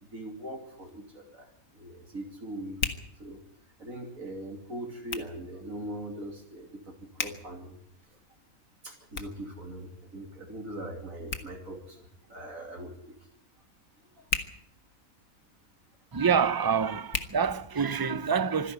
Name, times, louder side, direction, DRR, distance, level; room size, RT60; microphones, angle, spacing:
voice 1, 0.0-1.5 1.7-3.4 3.8-7.8 8.8-13.2 14.2-14.3, right 1 dB, 70° right, 3.2 m, -41 dB
Hands, 0.5-18.2, left 5 dB, 70° left, 1.9 m, -42 dB
voice 2, 16.1-18.7, right 6 dB, 25° right, 0.5 m, -26 dB
25.5 x 11.0 x 9.5 m
omnidirectional pair, 1.5 m